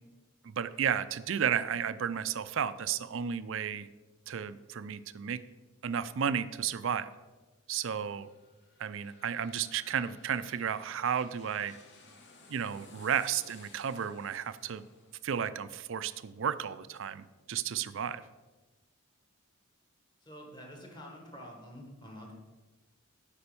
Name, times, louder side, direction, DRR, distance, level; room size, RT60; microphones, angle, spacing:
voice 1, 0.4-3.9 4.3-5.4 5.8-7.1 7.7-8.3 8.8-11.7 12.5-14.8 15.2-18.2, right 8 dB, 60° right, 14 dB, 0.4 m, -33 dB
sound 1, 7.8-17.5 17.9-18.0, left 3 dB, 55° left, 1.3 m, -59 dB
voice 2, 20.2-22.3, equal, 20° left, 1 dB, 1.7 m, -47 dB
8.7 x 5.3 x 6.9 m, 1.2 s
head